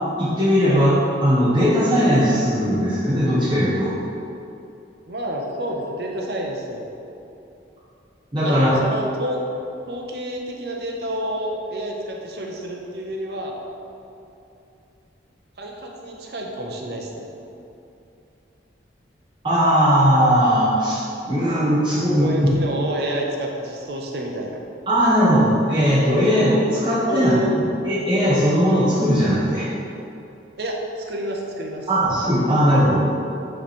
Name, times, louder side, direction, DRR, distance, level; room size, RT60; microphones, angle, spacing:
voice 1, 0.2-0.9 1.2-3.9 8.3-8.8 19.4-22.5 24.9-27.3 27.8-29.7 31.9-33.0, equal, 25° right, -9 dB, 1.3 m, -18 dB
voice 2, 5.1-6.9 8.4-9.4 9.9-13.6 15.6-17.3 22.2-24.6 27.1-27.6 30.6-31.9, equal, 60° right, 0 dB, 0.8 m, -29 dB
8.6 x 3.3 x 4.2 m, 2.8 s
head